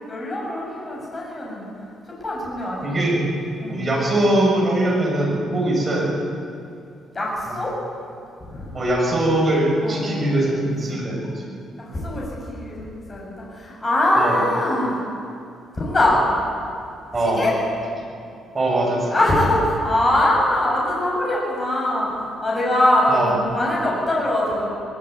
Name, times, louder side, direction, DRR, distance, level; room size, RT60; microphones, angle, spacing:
voice 1, 0.1-1.7 2.1-3.2 3.6-3.8 7.1-7.7 8.5-8.7 9.8-10.2 11.8-15.1 15.7-16.2 17.4-17.5 19.1-23.2 23.5-24.7, left 1 dB, 20° left, -4 dB, 7.8 m, -22 dB
voice 2, 2.8-3.2 3.7-6.2 7.5-7.6 8.7-11.4 14.2-14.4 17.1-17.4 18.5-19.2 23.1-23.4, right 1 dB, 20° right, -3 dB, 7.7 m, -21 dB
23.0 x 20.0 x 9.7 m, 2.4 s
cardioid pair, 170°, 0 cm